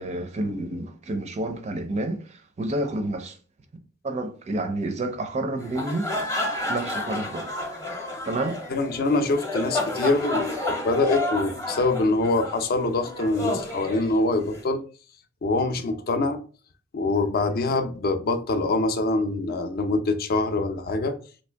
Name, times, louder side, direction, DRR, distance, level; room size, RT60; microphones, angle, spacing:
voice 1, 0.0-3.4 4.0-6.1 6.7-7.5 8.2-8.6, right 2 dB, 35° right, 0.4 m, -29 dB
sound 1, 5.6-14.6, left 1 dB, 15° left, 0.7 m, -31 dB
voice 2, 8.7-14.8 15.4-16.4 16.9-21.1, left 2 dB, 50° left, 0.5 m, -24 dB
3.1 x 2.6 x 3.3 m
head